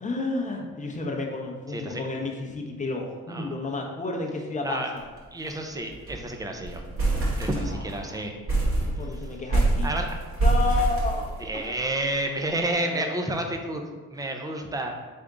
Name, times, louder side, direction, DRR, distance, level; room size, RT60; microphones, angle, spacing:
voice 1, 0.0-5.0 7.6-8.2 9.0-10.0 10.4-11.7 12.7-13.3, left 3 dB, 25° left, 0 dB, 0.8 m, -32 dB
voice 2, 1.7-2.0 3.3-3.5 4.6-4.9 5.3-6.8 7.4-8.3 8.8-8.9 9.8-10.2 11.4-13.8 14.1-14.9, right 1 dB, 10° right, 4 dB, 0.5 m, -30 dB
sound 1, 5.0-5.2 5.5-5.6 5.9-6.3 6.6-8.0 8.5-11.8, right 2 dB, 45° right, 1.4 m, -25 dB
3.6 x 3.5 x 3.8 m, 1.3 s
cardioid pair, 90°, 30 cm